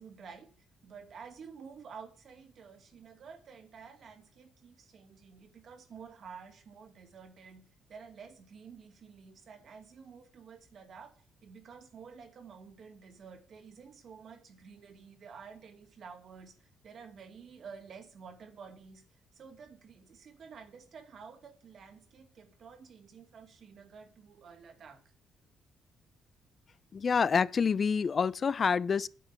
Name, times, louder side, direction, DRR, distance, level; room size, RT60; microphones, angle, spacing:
voice 1, 0.0-25.0, right 6 dB, 55° right, 2.5 m, -51 dB
voice 2, 26.9-29.1, left 6 dB, 40° left, 0.4 m, -27 dB
9.3 x 8.0 x 6.9 m
cardioid pair, 90°, 0 cm